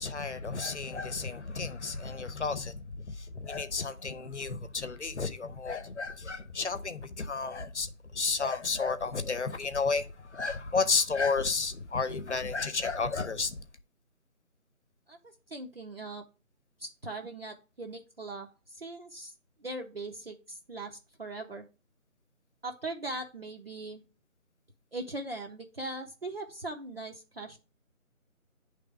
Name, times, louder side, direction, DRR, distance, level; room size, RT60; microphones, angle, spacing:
voice 1, 0.0-2.8 3.4-7.9 8.1-10.1 10.3-13.6, left 4 dB, 55° left, 0.9 m, -32 dB
voice 2, 15.1-16.2 16.8-19.3 19.6-21.7 22.6-24.0 24.9-27.6, right 2 dB, 45° right, 0.7 m, -40 dB
9.0 x 3.4 x 4.7 m
figure-of-eight pair, 165°, 42 cm